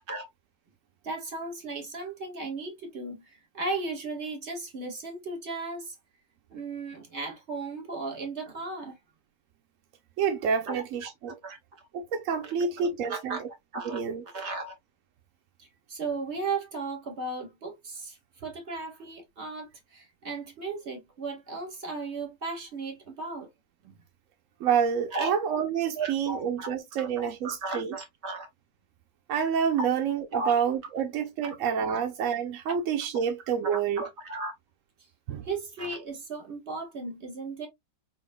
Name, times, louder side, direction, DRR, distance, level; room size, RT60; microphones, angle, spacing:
voice 1, 1.0-6.0 6.5-9.0 10.7-11.9 12.4-13.4 13.7-14.0 14.3-14.7 15.6-23.5 23.8-24.0 25.1-25.3 26.0-26.7 27.0-28.5 30.3-30.6 31.4-31.6 31.9-32.0 33.6-34.5 35.4-37.7, right 3 dB, 40° right, 2.0 m, -36 dB
voice 2, 10.2-11.4 11.9-13.5 13.8-14.2 24.6-27.9 29.3-34.0 35.3-35.5, right 7 dB, 65° right, 0.8 m, -28 dB
4.4 x 3.9 x 2.2 m
omnidirectional pair, 1.9 m